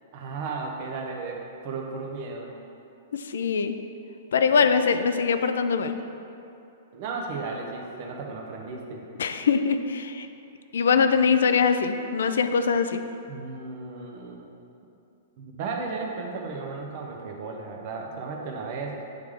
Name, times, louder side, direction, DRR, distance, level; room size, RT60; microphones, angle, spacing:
voice 1, 0.1-2.5 4.5-4.6 6.9-9.0 13.3-14.5 15.4-19.0, right 4 dB, 45° right, 1 dB, 0.7 m, -35 dB
voice 2, 3.1-3.7 4.3-6.0 9.2-10.3 10.7-13.0, left 5 dB, 85° left, 9 dB, 0.3 m, -22 dB
7.8 x 3.3 x 3.6 m, 2.7 s
hypercardioid pair, 155°, 0 cm